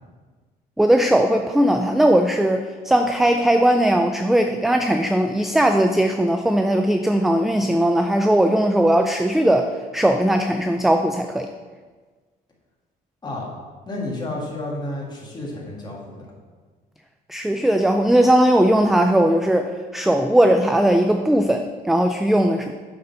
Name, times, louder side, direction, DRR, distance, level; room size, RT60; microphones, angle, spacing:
voice 1, 0.8-11.5 17.3-22.7, right 1 dB, ahead, 6 dB, 0.3 m, -18 dB
voice 2, 13.9-16.3, left 2 dB, 25° left, -2 dB, 2.0 m, -31 dB
7.9 x 4.0 x 5.4 m, 1.4 s
cardioid pair, 110°, 17 cm